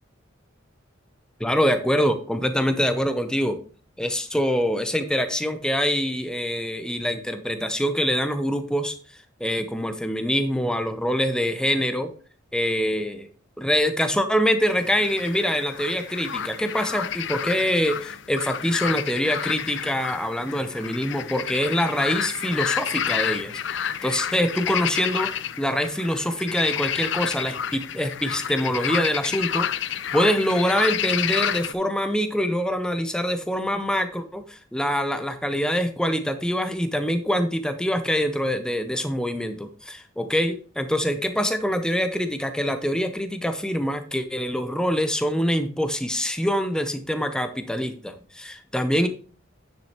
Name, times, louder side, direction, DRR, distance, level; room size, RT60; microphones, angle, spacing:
voice 1, 1.4-3.6 4.0-8.9 9.4-12.1 12.5-13.3 13.6-25.3 25.6-49.1, equal, 5° left, 8 dB, 0.7 m, -25 dB
sound 1, 14.6-31.7, left 9 dB, 60° left, 0.5 m, -30 dB
9.6 x 7.4 x 2.9 m, 0.40 s
head